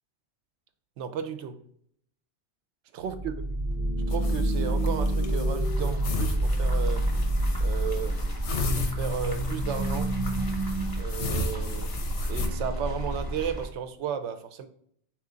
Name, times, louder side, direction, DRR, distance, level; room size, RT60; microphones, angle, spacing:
voice 1, 1.0-1.6 2.9-3.3 4.1-7.0 7.6-8.2 8.7-10.1 11.0-11.9 12.3-14.7, right 8 dB, 90° right, 0.9 m, -34 dB
sound 1, 3.0-13.7, right 1 dB, 35° right, 0.6 m, -28 dB
sound 2, 4.1-12.5, left 3 dB, 85° left, 1.0 m, -35 dB
sound 3, 5.6-13.7, left 1 dB, 25° left, 0.5 m, -39 dB
3.7 x 3.0 x 3.8 m
omnidirectional pair, 1.1 m